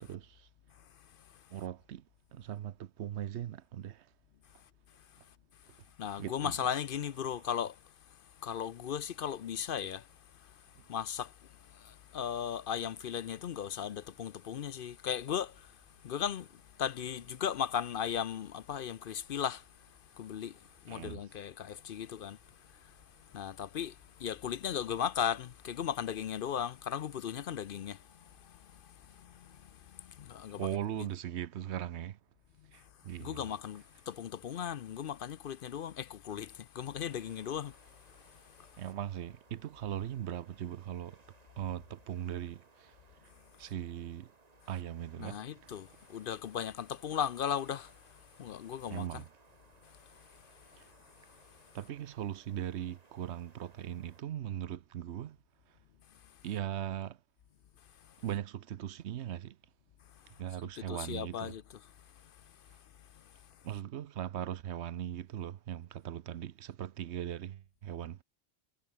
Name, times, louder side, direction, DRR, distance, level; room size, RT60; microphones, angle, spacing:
voice 1, 0.0-0.5 1.5-2.0 2.3-4.1 6.2-6.5 10.8-10.9 20.9-21.2 30.6-32.2 32.7-33.5 38.8-41.2 41.6-42.9 43.6-44.3 44.7-45.8 48.9-49.3 50.8-50.9 51.7-55.4 56.4-57.2 58.2-59.6 60.4-61.5 63.6-68.2, right 11 dB, 80° right, 1.0 m, -39 dB
voice 2, 6.0-7.8 8.4-30.7 33.2-37.8 38.1-38.8 45.2-49.2 49.8-50.0 60.8-61.9 62.2-62.3 63.1-63.2, left 8 dB, 60° left, 0.7 m, -37 dB
sound 1, 13.5-30.0, right 1 dB, 50° right, 7.1 m, -70 dB
sound 2, 37.0-54.2, right 3 dB, 35° right, 1.7 m, -64 dB
omnidirectional pair, 1.1 m